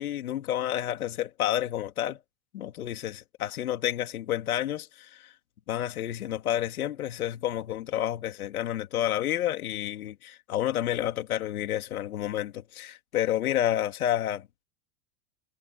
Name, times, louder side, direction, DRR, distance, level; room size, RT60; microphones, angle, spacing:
voice 1, 0.0-2.2 2.5-5.3 5.7-14.6, left 12 dB, 90° left, 3.2 m, -30 dB
supercardioid pair, 130°, 42 cm